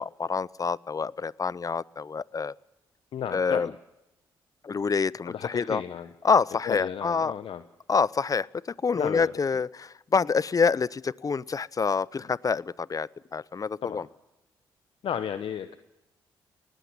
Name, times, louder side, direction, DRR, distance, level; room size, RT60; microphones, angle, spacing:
voice 1, 0.0-2.5 3.3-3.7 4.6-5.8 6.2-7.3 7.9-8.5 8.8-14.0, left 5 dB, 35° left, 22 dB, 0.6 m, -27 dB
voice 2, 3.1-3.7 5.3-6.1 6.6-7.6 8.9-9.4 13.8-14.0 15.0-15.8, left 8 dB, 60° left, 11 dB, 1.0 m, -33 dB
19.5 x 15.0 x 9.7 m, 0.95 s
hypercardioid pair, 45°, 10 cm